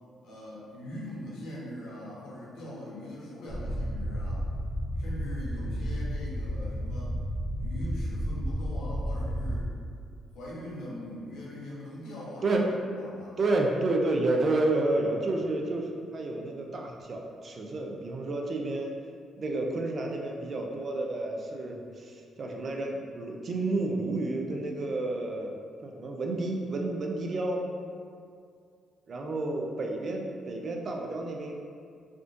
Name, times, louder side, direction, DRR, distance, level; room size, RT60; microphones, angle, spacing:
voice 1, 0.2-4.5 5.0-7.1 7.6-9.7 10.3-12.6 13.0-13.4, left 1 dB, 85° left, -6 dB, 0.8 m, -41 dB
sound 1, 3.5-9.6, equal, 20° left, 0.9 m, -32 dB
voice 2, 13.4-18.9 19.4-25.5 25.8-27.6 29.1-31.5, right 2 dB, 45° right, 1 dB, 0.4 m, -30 dB
3.6 x 2.4 x 2.5 m, 2.3 s
cardioid pair, 90°, 0 cm